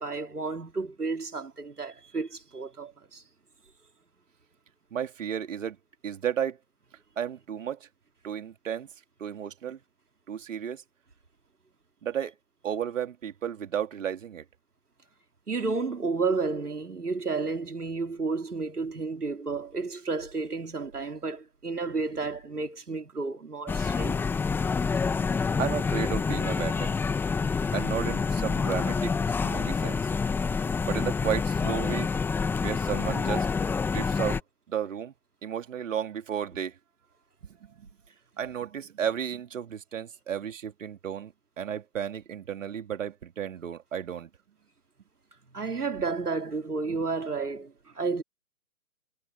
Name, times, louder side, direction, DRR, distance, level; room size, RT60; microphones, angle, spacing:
voice 1, 0.0-3.2 15.5-24.2 45.5-48.2, right 4 dB, 80° right, 3.7 m, -31 dB
voice 2, 4.9-5.8 6.0-6.6 7.2-7.9 8.2-8.9 9.2-9.8 10.3-10.8 12.0-12.3 12.6-14.4 25.6-27.0 27.7-30.1 30.8-32.1 32.6-33.5 33.8-34.4 34.7-35.1 35.4-36.8 37.6-37.9 38.4-44.3 46.9-47.0, right 9 dB, 55° right, 2.7 m, -33 dB
sound 1, 23.7-34.4, left 5 dB, 5° left, 1.1 m, -27 dB
figure-of-eight pair, 135°, 45 cm